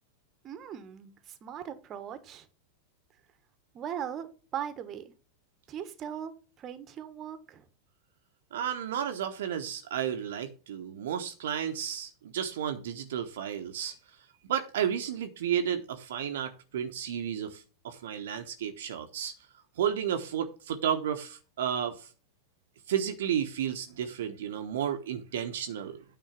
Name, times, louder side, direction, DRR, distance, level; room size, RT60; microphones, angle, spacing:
voice 1, 0.4-2.5 3.7-5.1 5.7-7.7, right 9 dB, 30° right, 11 dB, 1.3 m, -39 dB
voice 2, 8.5-13.9 14.5-19.3 19.8-22.1 22.9-26.0, right 9 dB, 60° right, 6 dB, 1.1 m, -32 dB
9.3 x 4.3 x 7.1 m, 0.35 s
figure-of-eight pair, 90°, 0 cm